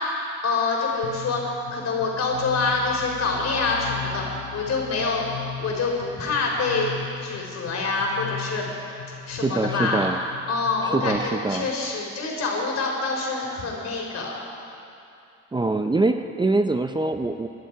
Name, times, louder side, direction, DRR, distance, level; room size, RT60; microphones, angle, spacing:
voice 1, 0.4-4.2 4.5-5.3 5.6-6.9 7.2-8.7 9.3-10.1 10.5-14.4 15.6-15.7, left 3 dB, 60° left, -2 dB, 4.2 m, -26 dB
sound 1, 1.0-11.2, left 9 dB, 80° left, 1.5 m, -38 dB
voice 2, 9.4-10.2 10.8-11.7 15.5-17.5, right 3 dB, 15° right, 7 dB, 0.6 m, -24 dB
22.0 x 11.5 x 4.7 m, 2.7 s
cardioid pair, 90°, 30 cm